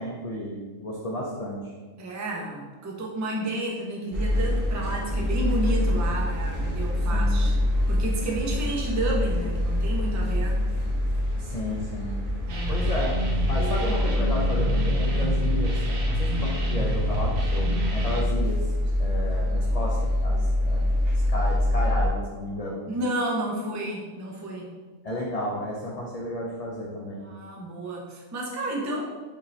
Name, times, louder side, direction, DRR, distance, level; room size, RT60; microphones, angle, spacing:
voice 1, 0.0-1.7 7.1-7.4 11.4-12.2 12.7-13.2 13.5-18.7 19.0-22.8 25.0-27.2, left 1 dB, 85° left, -3 dB, 0.3 m, -32 dB
voice 2, 2.0-7.5 7.9-10.6 12.5-12.8 13.5-13.8 22.9-24.7 27.2-29.0, right 1 dB, 25° right, -2 dB, 0.3 m, -31 dB
sound 1, 4.1-22.1, left 1 dB, 50° right, 1.1 m, -25 dB
sound 2, 12.5-18.2, right 1 dB, 80° right, 1.2 m, -31 dB
5.2 x 2.7 x 3.2 m, 1.4 s
omnidirectional pair, 1.4 m